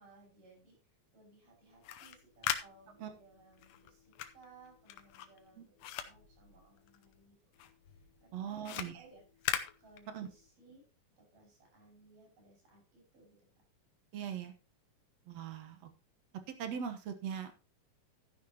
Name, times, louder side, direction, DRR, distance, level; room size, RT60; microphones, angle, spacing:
voice 1, 0.0-4.1 4.3-7.7 7.9-9.5 9.8-10.8 11.2-13.5, right 3 dB, 80° right, 0 dB, 7.5 m, -62 dB
sound 1, 1.7-7.2 7.5-10.5, left 11 dB, 85° left, 2.4 m, -41 dB
voice 2, 8.3-9.0 10.1-10.3 14.1-14.5 15.3-15.8 16.5-17.6, right 8 dB, 60° right, 9 dB, 2.1 m, -40 dB
13.0 x 10.0 x 2.9 m, 0.31 s
omnidirectional pair, 3.7 m